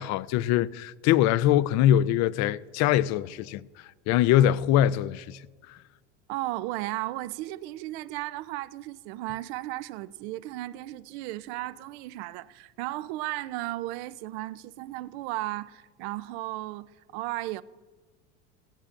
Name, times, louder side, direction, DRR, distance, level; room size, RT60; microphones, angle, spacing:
voice 1, 0.0-3.6 4.1-5.4, left 12 dB, 50° left, 0.5 m, -23 dB
voice 2, 6.3-17.6, right 17 dB, 65° right, 0.6 m, -35 dB
18.0 x 15.5 x 2.5 m
hypercardioid pair, 100°, 35 cm